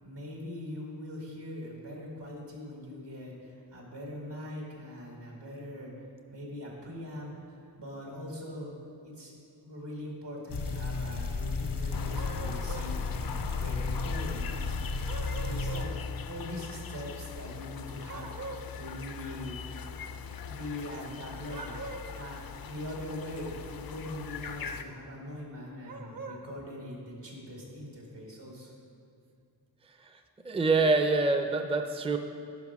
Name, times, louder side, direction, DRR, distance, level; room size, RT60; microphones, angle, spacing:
voice 1, 0.0-5.9 6.3-8.7 9.0-9.4 9.6-14.8 15.5-16.0 16.2-19.6 20.4-28.7, left 1 dB, 80° right, -2 dB, 2.2 m, -42 dB
sound 1, 10.5-15.9, left 3 dB, 75° left, 0.9 m, -33 dB
sound 2, 11.9-24.8, left 7 dB, 60° left, 0.5 m, -41 dB
sound 3, 12.1-12.9 15.1-15.9 18.1-18.7 21.4-22.2 25.8-26.4, right 3 dB, 55° right, 0.9 m, -42 dB
voice 2, 30.0-32.2, right 3 dB, 15° right, 6 dB, 0.5 m, -26 dB
10.5 x 5.7 x 4.8 m, 2.5 s
wide cardioid pair, 80°, 41 cm